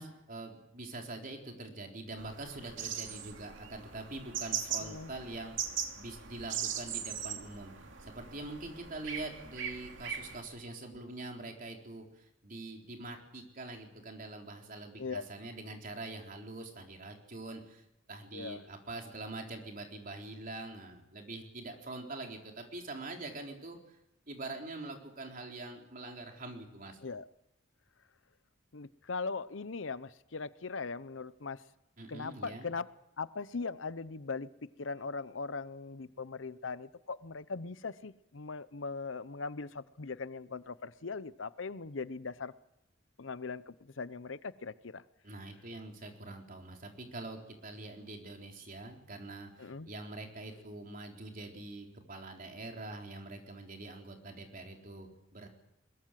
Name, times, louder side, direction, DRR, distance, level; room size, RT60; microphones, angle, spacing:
voice 1, 0.0-7.7 8.0-24.0 24.3-27.0 32.0-32.7 45.2-55.5, right 2 dB, 45° right, 2 dB, 4.0 m, -44 dB
sound 1, 2.2-10.4, right 8 dB, 70° right, 2.6 m, -40 dB
voice 2, 4.8-5.1 15.0-15.2 18.3-18.6 27.0-27.3 28.7-31.6 32.1-32.9 33.2-42.5 43.2-45.0 49.6-49.9, left 4 dB, 75° left, 16 dB, 0.8 m, -40 dB
22.0 x 21.0 x 7.7 m, 0.85 s
head